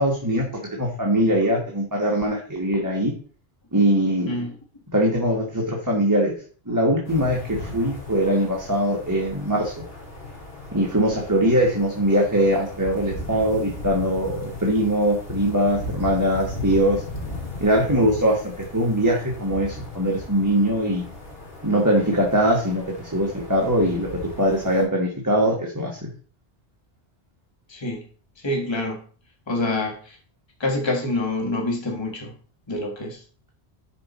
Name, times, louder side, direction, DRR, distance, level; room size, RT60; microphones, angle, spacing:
voice 1, 0.0-3.1 3.7-4.3 4.9-6.3 6.7-9.7 10.7-17.0 17.6-21.0 21.6-22.8 23.1-24.1 24.4-26.1, equal, 15° right, -1 dB, 1.4 m, -21 dB
voice 2, 4.3-4.6 27.7-28.0 28.4-29.0 29.5-30.2 30.6-32.3 32.7-33.2, left 2 dB, 25° left, 1 dB, 1.5 m, -26 dB
sound 1, 7.0-24.8, left 1 dB, 65° left, 2.5 m, -37 dB
11.0 x 4.6 x 4.1 m, 0.43 s
omnidirectional pair, 1.1 m